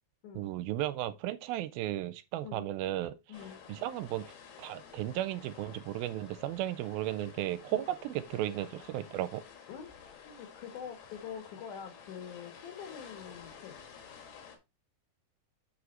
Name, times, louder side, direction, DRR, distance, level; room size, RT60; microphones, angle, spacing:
voice 1, 0.4-3.2 3.7-4.3 4.6-9.4, right 13 dB, 80° right, 2.3 m, -35 dB
sound 1, 3.3-14.6, left 7 dB, 80° left, 3.5 m, -52 dB
voice 2, 3.3-3.6 7.7-7.8 9.7-9.9 10.2-13.8, left 8 dB, 65° left, 2.5 m, -45 dB
8.7 x 5.0 x 3.1 m
omnidirectional pair, 4.4 m